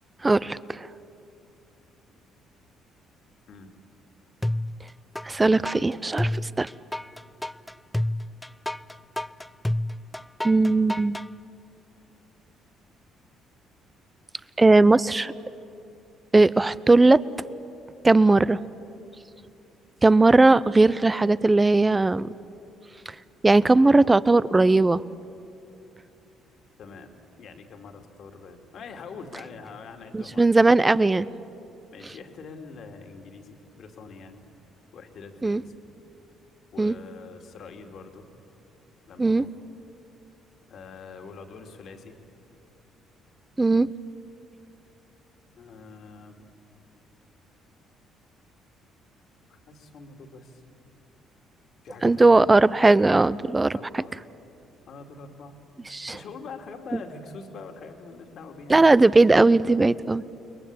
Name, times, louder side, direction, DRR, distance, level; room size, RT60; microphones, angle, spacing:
voice 1, 0.2-0.9 5.2-6.7 10.4-11.2 14.6-15.3 16.3-17.2 18.0-18.6 20.0-22.3 23.4-25.0 30.1-31.3 35.4-35.6 36.8-36.9 39.2-39.4 43.6-43.9 52.0-54.0 55.9-56.1 58.7-60.2, right 2 dB, 20° right, 18 dB, 0.8 m, -18 dB
sound 1, 4.4-5.3 5.6-11.3, left 1 dB, 10° left, 0.6 m, -29 dB
voice 2, 26.8-27.1 27.4-30.6 31.9-34.4 34.9-35.7 36.7-38.3 39.1-39.5 40.7-42.1 45.5-46.4 49.5-50.6 51.8-52.4 53.7-54.2 54.9-55.6 56.1-58.9, left 4 dB, 60° left, 5 dB, 2.6 m, -44 dB
29.5 x 21.5 x 8.6 m, 2.7 s
hypercardioid pair, 50°, 0 cm